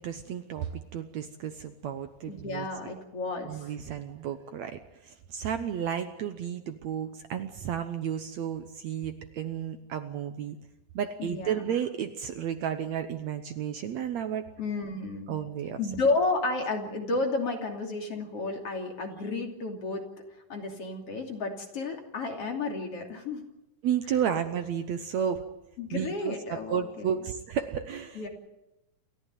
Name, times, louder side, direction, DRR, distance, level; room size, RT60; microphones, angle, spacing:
voice 1, 0.0-2.7 3.5-10.6 11.0-14.5 15.3-15.8 23.8-25.4 25.9-28.2, right 8 dB, 65° right, 9 dB, 2.0 m, -32 dB
voice 2, 2.3-3.6 11.2-11.6 14.6-15.3 15.8-20.0 20.5-23.5 25.8-27.2 28.2-28.3, left 3 dB, 45° left, 2 dB, 3.7 m, -32 dB
28.5 x 14.5 x 9.2 m, 0.93 s
omnidirectional pair, 3.8 m